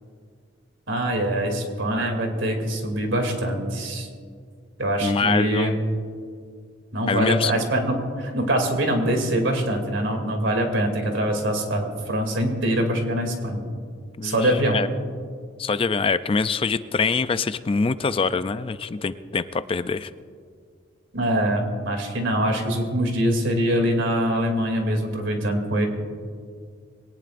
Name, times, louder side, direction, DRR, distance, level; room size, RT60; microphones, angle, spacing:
voice 1, 0.9-4.1 4.8-5.7 6.9-13.6 14.2-14.8 21.1-25.9, right 1 dB, 75° right, 3 dB, 2.6 m, -24 dB
voice 2, 5.0-5.8 7.1-7.5 14.2-14.9 15.6-20.1, left 4 dB, 30° left, 13 dB, 0.4 m, -24 dB
22.0 x 18.0 x 2.5 m, 2.1 s
head